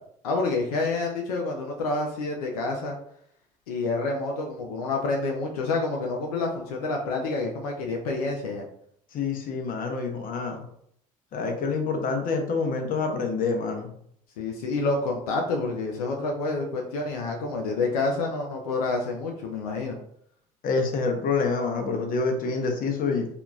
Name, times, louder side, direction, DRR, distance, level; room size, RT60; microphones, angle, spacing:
voice 1, 0.2-3.0 3.7-8.7 14.4-20.0, left 3 dB, 85° left, 1 dB, 0.5 m, -28 dB
voice 2, 9.1-10.6 11.3-13.9 20.6-23.3, left 4 dB, 50° left, 3 dB, 0.7 m, -27 dB
2.8 x 2.4 x 2.2 m, 0.68 s
hypercardioid pair, 65°, 19 cm